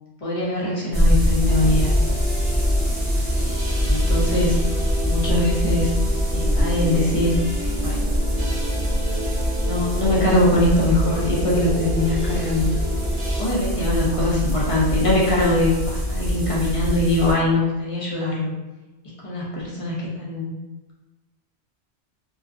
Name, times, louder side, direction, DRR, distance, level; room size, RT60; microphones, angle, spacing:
voice 1, 0.2-1.9 3.3-4.6 5.0-5.9 6.3-7.4 7.8-8.1 9.6-12.7 13.4-18.5 19.2-20.5, left 1 dB, 45° left, -5 dB, 0.5 m, -22 dB
sound 1, 0.9-17.3, equal, 30° right, 0.6 m, -23 dB
sound 2, 1.4-13.4, right 1 dB, 50° right, 0.9 m, -32 dB
2.5 x 2.3 x 2.4 m, 1.1 s
omnidirectional pair, 1.2 m